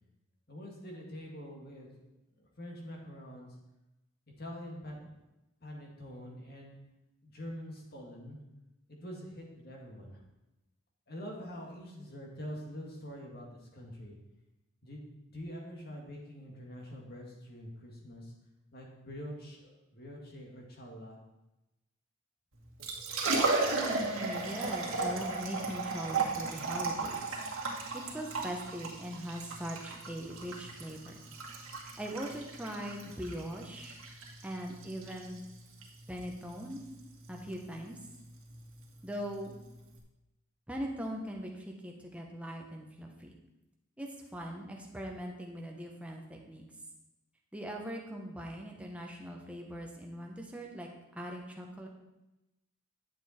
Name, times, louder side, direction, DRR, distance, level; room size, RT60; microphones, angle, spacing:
voice 1, 0.5-1.9 2.4-3.6 4.4-5.2 5.6-6.8 7.2-8.4 8.9-10.2 11.1-13.5 13.7-14.2 14.8-18.3 18.7-21.2, equal, 45° left, 0 dB, 2.0 m, -45 dB
Liquid, 22.6-40.0, right 3 dB, 85° right, 2.0 m, -36 dB
voice 2, 24.0-27.4 27.9-31.1 32.0-34.0 34.4-35.4 36.1-36.8 37.3-38.0 39.0-39.6 40.7-43.3 44.0-46.6 47.5-50.9 51.1-51.9, equal, 5° right, 0 dB, 1.1 m, -41 dB
10.0 x 7.1 x 4.4 m, 0.98 s
head